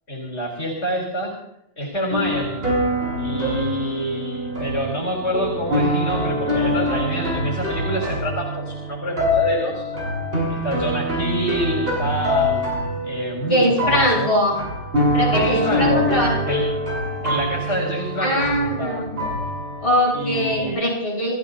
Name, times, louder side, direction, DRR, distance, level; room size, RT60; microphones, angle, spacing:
voice 1, 0.1-1.3 1.8-2.7 3.2-9.8 10.5-12.6 13.0-14.3 15.3-16.1 16.5-16.7 17.2-19.1 20.1-20.8, equal, 65° left, -2 dB, 3.8 m, -26 dB
sound 1, 2.1-20.7, left 1 dB, 55° right, 6.3 m, -25 dB
voice 2, 13.5-14.6 15.1-16.4 18.2-19.3 19.8-21.4, equal, 30° left, -5 dB, 6.7 m, -21 dB
28.5 x 14.5 x 2.8 m, 0.77 s
omnidirectional pair, 1.2 m